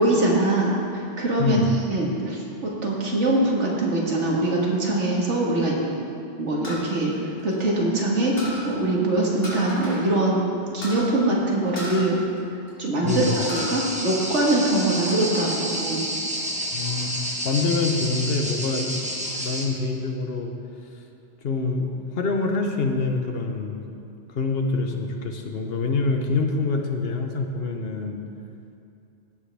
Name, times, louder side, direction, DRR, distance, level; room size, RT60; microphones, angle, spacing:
voice 1, 0.0-1.6 1.9-5.7 6.4-8.4 8.6-10.5 10.7-12.2 12.8-16.0, right 2 dB, 75° right, -3 dB, 2.0 m, -23 dB
voice 2, 1.4-1.7 13.0-13.4 16.7-18.9 19.4-20.5 21.4-21.9 22.2-23.8 24.3-28.2, left 3 dB, 55° left, 3 dB, 1.1 m, -25 dB
sound 1, 6.6-8.0 8.4-8.7 9.4-10.1 10.3-10.4 10.8-11.1 11.8-12.9 13.3-13.8 14.2-14.9, left 1 dB, 75° left, 2.7 m, -35 dB
sound 2, 13.1-19.7, equal, 5° right, 1.0 m, -30 dB
16.5 x 7.5 x 3.4 m, 2.5 s
omnidirectional pair, 1.2 m